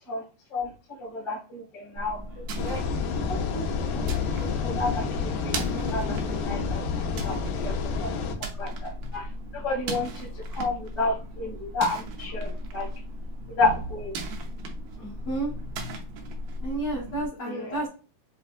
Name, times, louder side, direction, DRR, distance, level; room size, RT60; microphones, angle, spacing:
voice 1, 1.0-2.8 3.3-5.6 5.9-7.7 8.0-8.1 8.6-12.9 13.5-14.1 17.4-17.8, left 3 dB, 25° left, -4 dB, 1.1 m, -31 dB
sound 1, 2.0-17.3, right 1 dB, 80° right, 1.8 m, -36 dB
sound 2, 2.6-8.4, left 5 dB, 80° left, 2.4 m, -29 dB
voice 2, 15.0-15.5 16.6-17.9, right 2 dB, 60° left, -5 dB, 1.7 m, -31 dB
6.5 x 2.5 x 2.5 m, 0.35 s
omnidirectional pair, 4.7 m